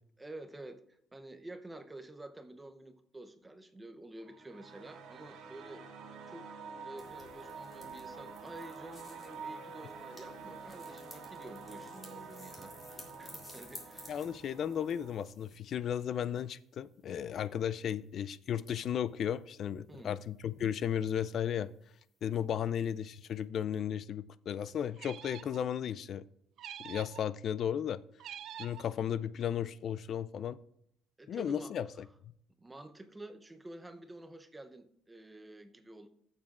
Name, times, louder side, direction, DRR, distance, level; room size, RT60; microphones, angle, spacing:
voice 1, 0.2-5.8 6.3-6.5 6.8-14.2 19.9-20.2 31.2-31.7 32.6-36.1, right 2 dB, 10° right, 0.6 m, -50 dB
sound 1, 4.2-15.2, right 4 dB, 80° right, 1.8 m, -48 dB
sound 2, 7.0-15.6, left 1 dB, 20° left, 2.3 m, -54 dB
voice 2, 14.1-21.7 22.2-26.3 26.8-28.0 28.6-30.6 31.3-32.3, left 9 dB, 45° left, 0.3 m, -35 dB
sound 3, 25.0-25.6 26.6-27.2 28.2-28.9, right 10 dB, 55° right, 0.4 m, -46 dB
15.0 x 7.4 x 2.4 m
cardioid pair, 150°, 0 cm